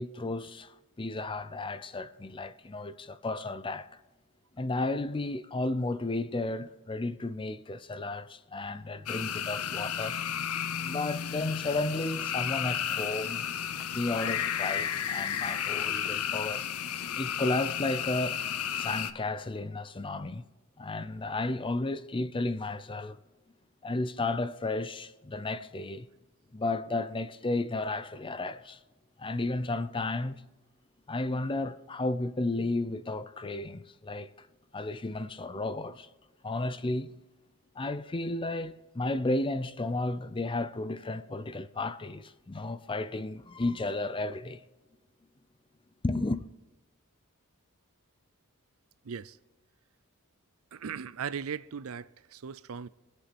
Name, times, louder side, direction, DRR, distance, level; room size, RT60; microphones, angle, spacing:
voice 1, 0.0-4.0 4.6-10.2 10.8-13.5 13.8-16.6 17.2-18.4 18.8-20.4 20.8-23.2 23.8-26.1 26.5-28.8 29.2-30.4 31.1-34.5 34.7-36.1 36.4-37.2 37.8-44.6 46.0-46.4, left 2 dB, 25° left, 0.5 m, -33 dB
sound 1, 9.1-19.1, left 9 dB, 80° left, 0.8 m, -33 dB
voice 2, 49.0-49.4 50.7-52.9, right 7 dB, 65° right, 0.5 m, -38 dB
24.0 x 8.2 x 4.2 m
head